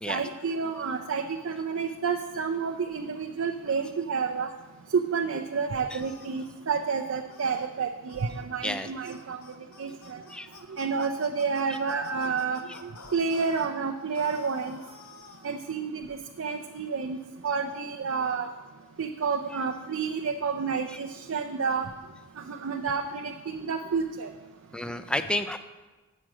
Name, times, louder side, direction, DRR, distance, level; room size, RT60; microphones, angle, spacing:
voice 1, 0.1-4.5 4.9-9.4 9.8-10.2 10.8-12.6 13.1-14.8 15.4-17.2 17.4-18.5 19.0-21.9 22.4-24.3, right 5 dB, 65° right, 4 dB, 0.5 m, -30 dB
sound 1, 6.0-6.5 7.3-7.7 8.1-8.3 8.6-8.8 9.1-13.7 14.1-15.6, left 4 dB, 80° left, 0.9 m, -49 dB
voice 2, 24.7-25.6, left 1 dB, 5° left, 9 dB, 0.4 m, -31 dB
8.6 x 6.3 x 5.9 m, 1.2 s
head